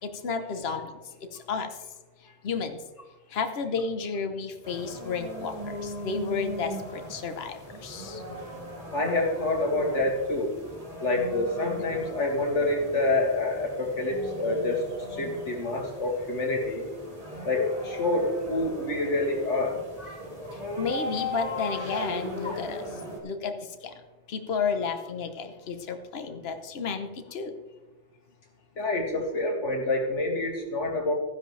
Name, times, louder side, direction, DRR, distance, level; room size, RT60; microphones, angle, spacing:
voice 1, 0.0-0.9 1.3-1.9 2.2-2.8 3.3-8.3 20.5-22.9 23.2-24.0 24.3-27.5, left 5 dB, 60° left, 7 dB, 1.2 m, -32 dB
sound 1, 4.6-23.2, left 1 dB, 30° right, 3.0 m, -38 dB
voice 2, 8.9-10.6 11.0-14.8 15.1-16.9 17.4-20.3 22.4-22.6 28.8-31.1, left 2 dB, 85° left, 0 dB, 2.5 m, -27 dB
15.0 x 10.0 x 3.3 m, 1.2 s
omnidirectional pair, 1.2 m